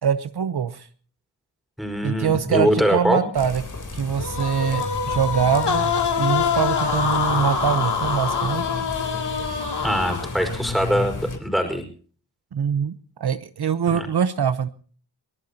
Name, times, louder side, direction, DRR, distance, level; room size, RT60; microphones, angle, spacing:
voice 1, 0.0-0.9 2.0-3.6 3.9-5.9 6.2-8.6 12.5-12.9 13.2-14.7, right 7 dB, 70° right, 11 dB, 0.9 m, -23 dB
voice 2, 1.8-3.2 9.8-11.8 13.9-14.1, equal, ahead, 4 dB, 5.1 m, -23 dB
sound 1, 3.3-11.4, left 3 dB, 45° left, 3.5 m, -33 dB
sound 2, 4.2-10.5, left 6 dB, 80° left, 2.7 m, -25 dB
23.0 x 19.0 x 2.9 m, 0.43 s
wide cardioid pair, 85°, 41 cm